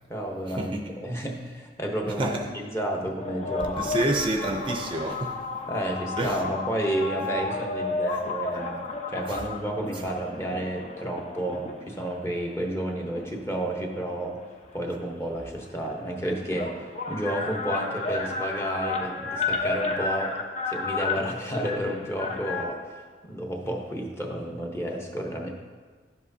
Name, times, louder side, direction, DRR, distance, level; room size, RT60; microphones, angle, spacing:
voice 1, 0.1-0.8 1.0-3.8 5.7-8.8 9.1-14.4 14.7-20.4 20.7-23.0 23.2-25.5, right 1 dB, 15° left, 1 dB, 0.9 m, -31 dB
voice 2, 2.1-2.5 3.8-5.4 6.2-6.4 9.3-9.4, right 2 dB, 30° right, 2 dB, 0.5 m, -28 dB
sound 1, 3.2-12.0 12.7-14.4 15.6-15.7 15.9-22.6, left 3 dB, 40° left, 0.6 m, -32 dB
10.5 x 7.5 x 2.7 m, 1.5 s
head